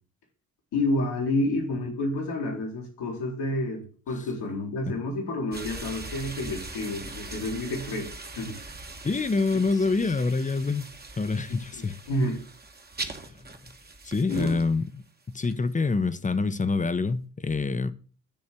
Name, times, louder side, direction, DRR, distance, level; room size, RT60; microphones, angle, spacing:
voice 1, 0.7-8.1 8.4-8.6 11.7-12.4 14.3-14.6, left 1 dB, 75° left, 2.0 m, -29 dB
sound 1, 5.5-14.9 15.4-15.5, right 3 dB, 25° right, 1.1 m, -41 dB
voice 2, 9.0-10.9 11.2-12.0 13.3-13.4 14.0-17.9, left 4 dB, 20° left, 0.7 m, -26 dB
8.7 x 3.2 x 6.0 m
hypercardioid pair, 45°, 40 cm